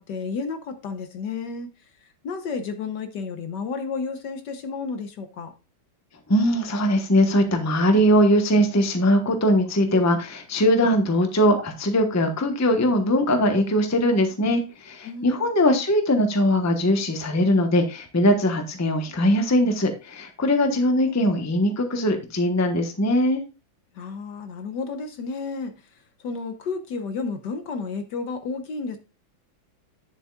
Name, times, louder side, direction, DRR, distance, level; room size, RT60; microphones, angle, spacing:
voice 1, 0.0-1.7 2.2-5.5 15.0-15.5 23.9-25.7 26.2-29.0, left 4 dB, 65° left, 1.4 m, -31 dB
voice 2, 6.3-23.4, equal, 15° left, 0.7 m, -21 dB
9.8 x 7.3 x 2.3 m
omnidirectional pair, 2.2 m